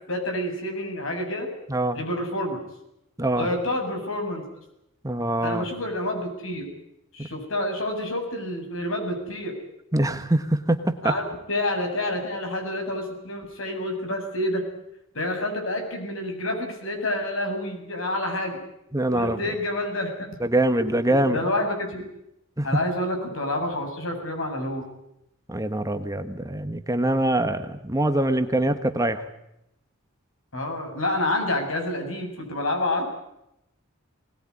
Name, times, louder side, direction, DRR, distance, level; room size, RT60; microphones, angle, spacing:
voice 1, 0.1-1.5 1.9-2.6 3.4-4.4 5.4-6.7 7.1-9.5 11.0-14.6 15.1-18.6 19.1-20.3 21.1-22.0 22.6-24.8 27.5-27.6 30.5-33.1, left 1 dB, 65° left, 3 dB, 7.4 m, -28 dB
voice 2, 3.2-3.5 5.0-5.7 9.9-11.1 18.9-19.4 20.4-21.4 22.6-22.7 25.5-29.2, right 1 dB, 15° right, 8 dB, 1.3 m, -24 dB
20.5 x 20.5 x 9.7 m, 0.81 s
head